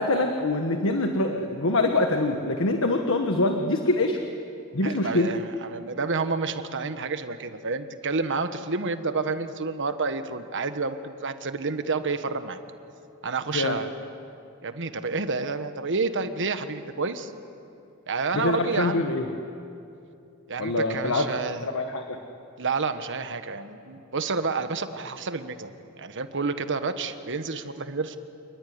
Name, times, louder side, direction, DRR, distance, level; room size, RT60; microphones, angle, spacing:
voice 1, 0.0-4.2 4.7-5.3 13.5-13.7 18.3-19.3 20.6-21.3 21.6-22.2, left 2 dB, 65° left, 4 dB, 1.5 m, -24 dB
voice 2, 4.8-12.6 13.2-13.9 14.6-17.3 18.1-19.1 20.5-21.6 22.6-25.7 26.0-28.2, right 4 dB, 55° right, 9 dB, 1.4 m, -29 dB
28.5 x 21.0 x 9.6 m, 2.7 s
head